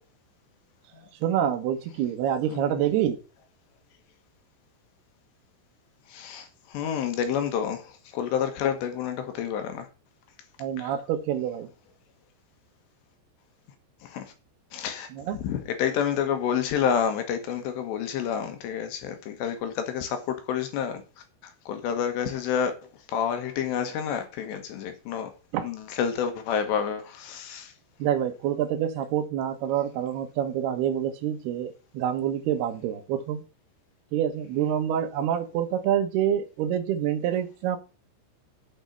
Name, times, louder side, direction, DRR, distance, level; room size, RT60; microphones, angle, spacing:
voice 1, 1.2-3.2 10.6-11.7 15.1-15.4 25.5-25.7 28.0-33.4 34.1-37.8, right 10 dB, 75° right, 2.5 m, -27 dB
voice 2, 2.5-2.8 6.1-9.9 10.8-10.9 14.0-14.3 14.7-21.0 21.4-22.7 23.1-25.3 25.6-27.7, left 8 dB, 70° left, 3.2 m, -29 dB
9.1 x 5.4 x 6.8 m
omnidirectional pair, 5.8 m